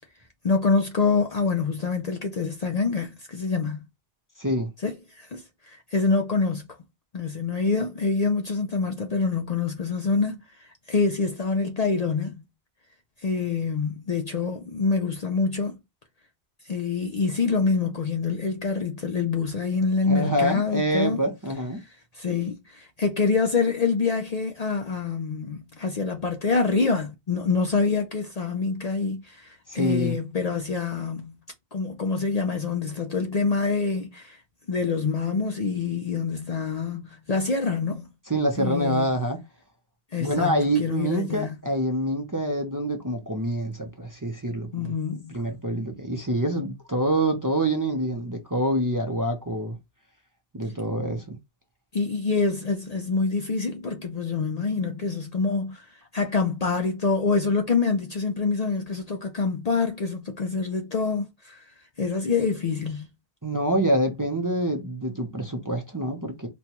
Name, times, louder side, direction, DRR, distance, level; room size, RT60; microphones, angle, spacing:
voice 1, 0.4-3.9 4.8-6.8 7.1-12.4 13.2-15.8 16.6-21.2 22.1-31.3 31.7-34.4 34.7-38.1 38.6-39.1 40.1-41.6 44.7-45.4 51.9-61.6 62.0-63.1, left 4 dB, 50° left, 0.6 m, -26 dB
voice 2, 4.4-4.7 20.1-21.8 29.7-30.2 38.3-39.4 40.2-44.9 45.3-49.8 50.5-51.4 63.4-66.5, right 1 dB, 25° right, 0.6 m, -26 dB
4.3 x 2.3 x 2.9 m
omnidirectional pair, 1.0 m